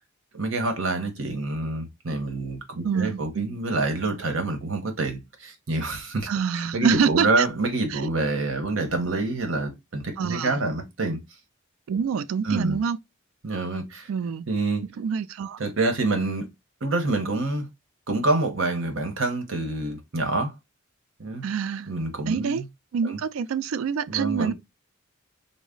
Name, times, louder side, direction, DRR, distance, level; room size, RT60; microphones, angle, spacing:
voice 1, 0.3-6.3 6.5-11.2 12.4-12.8 13.4-14.1 14.5-14.8 15.6-16.5 16.8-17.7 18.1-20.5 21.2-21.4 21.9-22.6 23.0-23.2 24.1-24.5, right 2 dB, 75° right, 1.0 m, -27 dB
voice 2, 2.8-3.6 6.3-7.5 7.9-8.0 10.2-10.6 11.9-13.0 14.1-14.5 15.0-15.7 21.4-21.9 22.3-22.6 22.9-24.5, right 6 dB, 90° right, 0.3 m, -26 dB
3.9 x 2.1 x 3.7 m
head